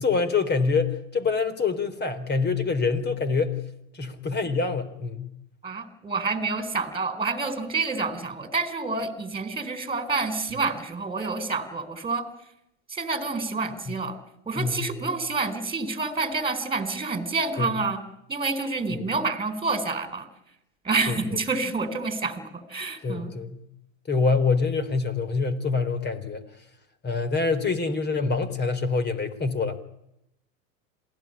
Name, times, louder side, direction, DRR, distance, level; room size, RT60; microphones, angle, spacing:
voice 1, 0.0-3.6 3.9-5.3 14.6-15.1 17.6-17.7 21.1-21.2 23.0-23.6 24.1-26.4 27.0-29.8, left 4 dB, 25° left, 14 dB, 3.8 m, -25 dB
voice 2, 5.6-12.3 12.9-14.2 14.5-18.0 18.3-20.3 20.8-23.3, right 3 dB, 15° right, 10 dB, 4.2 m, -28 dB
27.0 x 18.0 x 9.9 m, 0.81 s
hypercardioid pair, 105°, 41 cm